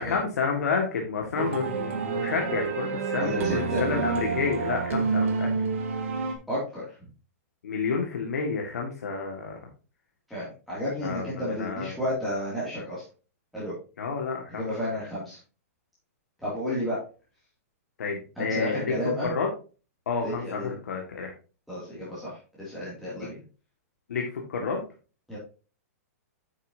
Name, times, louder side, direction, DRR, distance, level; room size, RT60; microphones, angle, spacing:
voice 1, 0.0-5.5 7.6-9.6 11.0-12.0 14.0-14.7 18.0-18.9 19.3-19.5 20.1-21.3 24.1-24.8, left 5 dB, 85° left, 1 dB, 1.9 m, -30 dB
sound 1, 1.4-6.4, right 5 dB, 60° right, 1.7 m, -28 dB
voice 2, 3.2-3.8 6.5-6.8 10.3-13.0 13.5-13.7 14.5-15.4 16.4-17.0 18.4-19.3 20.2-20.7 21.7-23.4 25.3-25.4, left 1 dB, ahead, -10 dB, 2.5 m, -32 dB
8.7 x 6.9 x 2.8 m, 0.34 s
hypercardioid pair, 170°, 8 cm